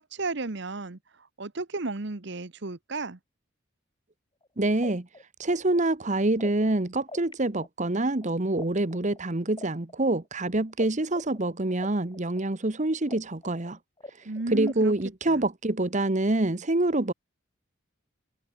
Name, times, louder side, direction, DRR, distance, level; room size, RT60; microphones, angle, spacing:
voice 1, 0.0-3.2 14.2-14.9 15.3-15.4, right 3 dB, 60° right, 1.1 m, -33 dB
sound 1, 4.4-4.5 4.8-7.3 7.6-10.9 11.1-15.0, left 2 dB, 25° left, 5.4 m, -45 dB
voice 2, 4.6-5.1 5.4-13.8 14.5-17.1, right 2 dB, 35° right, 1.2 m, -26 dB
head